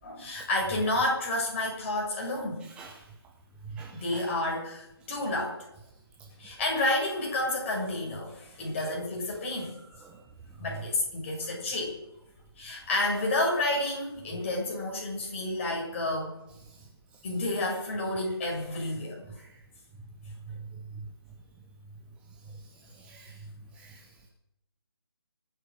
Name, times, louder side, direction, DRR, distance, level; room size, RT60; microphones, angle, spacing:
voice 1, 0.0-2.6 3.9-5.6 6.4-9.7 10.6-12.0 12.6-16.4 17.2-19.2, left 2 dB, 30° left, -2 dB, 6.6 m, -30 dB
voice 2, 3.7-4.2 23.0-23.3 23.8-23.9, right 5 dB, 10° right, 0 dB, 1.0 m, -44 dB
25.5 x 8.9 x 6.4 m, 0.86 s
figure-of-eight pair, 150°, 14 cm